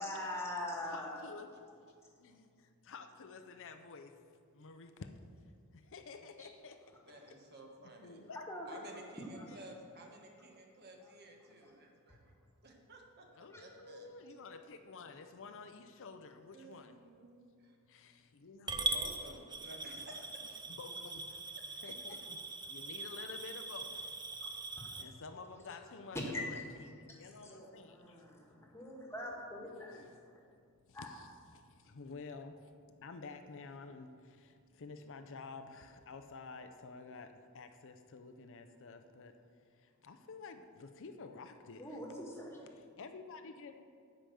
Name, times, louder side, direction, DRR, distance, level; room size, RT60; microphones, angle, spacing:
voice 1, 0.0-1.2 8.5-8.8 9.3-9.5 11.0-11.1 11.6-11.7 13.5-13.6 24.4-25.0 26.1-26.4 27.1-30.0 30.9-31.1 41.8-42.7, left 1 dB, 10° left, -1 dB, 1.6 m, -43 dB
voice 2, 0.9-1.5 1.8-4.2 4.5-5.1 5.7-6.8 7.8-8.4 9.5-9.6 13.3-17.0 17.9-18.9 20.6-24.2 24.5-24.6 25.0-28.3 29.5-30.2 30.9-42.0 43.0-43.8, left 4 dB, 60° left, 7 dB, 0.6 m, -51 dB
voice 3, 7.1-8.3 8.7-12.4 12.6-13.3 13.6-14.1 16.5-17.8 18.7-20.6, right 1 dB, 50° right, 1 dB, 1.4 m, -54 dB
Coin (dropping) / Glass, 18.7-25.0, right 3 dB, 20° right, 0.5 m, -41 dB
10.0 x 5.2 x 7.7 m, 2.2 s
head